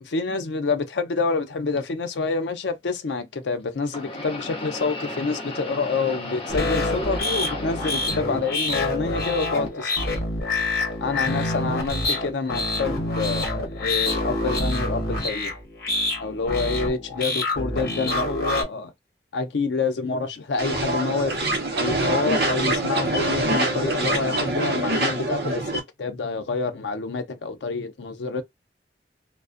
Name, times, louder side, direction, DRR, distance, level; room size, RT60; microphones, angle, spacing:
voice 1, 0.0-10.1 11.0-15.5 16.2-18.9 19.3-21.3 21.8-28.4, left 4 dB, 85° left, 0.5 m, -27 dB
sound 1, 1.8-1.9 3.9-8.9 9.2-10.1 10.8-10.9 11.9-12.0, left 1 dB, 30° left, 0.5 m, -35 dB
sound 2, 6.5-18.6, left 2 dB, 55° left, 0.9 m, -26 dB
sound 3, 20.6-25.8, right 1 dB, 65° right, 0.6 m, -24 dB
2.5 x 2.1 x 2.4 m
head